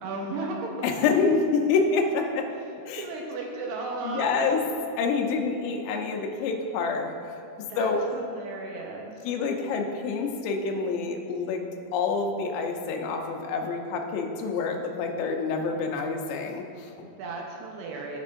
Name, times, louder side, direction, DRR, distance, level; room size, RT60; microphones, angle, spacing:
voice 1, 0.0-0.9 3.0-4.5 7.6-9.2 17.0-18.2, right 3 dB, 80° right, -1 dB, 2.7 m, -35 dB
voice 2, 0.8-2.5 2.9-3.0 4.0-4.6 5.0-7.1 7.8-8.0 9.2-11.6 11.9-16.9, left 4 dB, 80° left, 3 dB, 2.8 m, -27 dB
16.0 x 5.4 x 2.5 m, 2.5 s
omnidirectional pair, 5.0 m